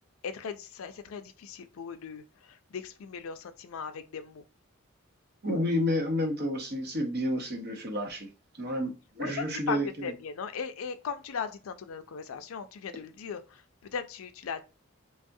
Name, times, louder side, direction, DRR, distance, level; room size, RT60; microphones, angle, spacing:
voice 1, 0.2-4.4 9.2-14.6, left 6 dB, 85° left, 0.4 m, -38 dB
voice 2, 5.4-8.3 8.6-10.1, left 1 dB, 50° right, 0.8 m, -30 dB
3.3 x 2.3 x 2.6 m
head